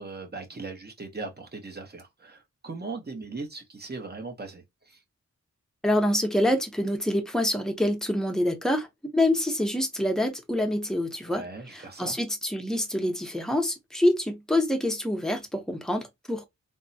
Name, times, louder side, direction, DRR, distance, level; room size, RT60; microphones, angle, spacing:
voice 1, 0.0-5.0 11.3-12.2, right 3 dB, 35° right, 0.8 m, -39 dB
voice 2, 5.8-8.9 9.1-11.5 11.7-16.4, left 1 dB, ahead, 0.7 m, -26 dB
3.5 x 2.0 x 2.6 m
wide cardioid pair, 105°, 30 cm